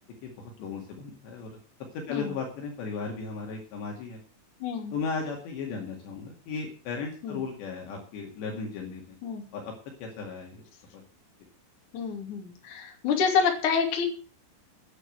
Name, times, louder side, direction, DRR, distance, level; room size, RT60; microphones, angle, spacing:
voice 1, 0.2-1.5 2.1-4.2 4.9-9.2 9.5-9.7 10.0-10.6 10.9-11.0, left 5 dB, 65° left, 0 dB, 4.2 m, -36 dB
voice 2, 4.6-4.9 7.2-7.4 9.2-9.4 11.9-14.0, left 6 dB, 45° left, 2 dB, 3.6 m, -27 dB
11.0 x 9.7 x 7.8 m, 0.39 s
omnidirectional pair, 5.7 m